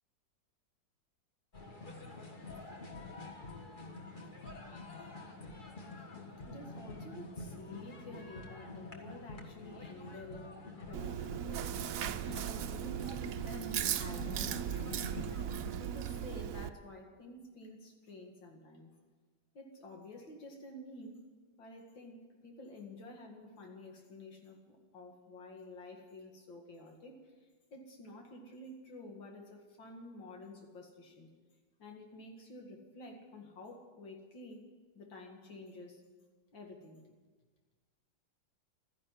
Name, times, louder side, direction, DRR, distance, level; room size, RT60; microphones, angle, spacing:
sound 1, 1.5-15.7, left 2 dB, 30° left, 1.5 m, -47 dB
voice 1, 6.4-11.8 12.2-15.3 15.8-18.9 19.5-21.3 21.6-31.3 31.8-34.7 34.9-36.0 36.5-37.1, left 1 dB, 80° left, 2 dB, 2.8 m, -50 dB
Chewing mastication, 10.9-16.7, right 10 dB, 70° right, 0.8 m, -37 dB
13.5 x 11.0 x 9.2 m, 1.4 s
omnidirectional pair, 2.0 m